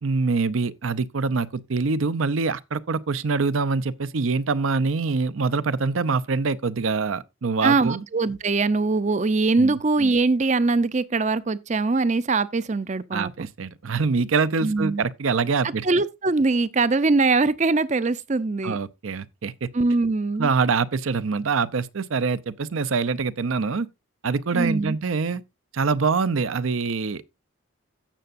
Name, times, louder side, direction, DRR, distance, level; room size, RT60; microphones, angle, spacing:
voice 1, 0.0-8.0 9.6-9.8 13.1-15.9 18.6-19.7 20.4-23.9 24.2-25.4 25.7-27.4, right 4 dB, 75° right, 0.6 m, -24 dB
voice 2, 7.6-13.3 14.6-15.0 15.8-18.8 19.7-20.5 24.5-25.0, right 3 dB, 35° right, 0.5 m, -22 dB
16.0 x 6.8 x 2.5 m
head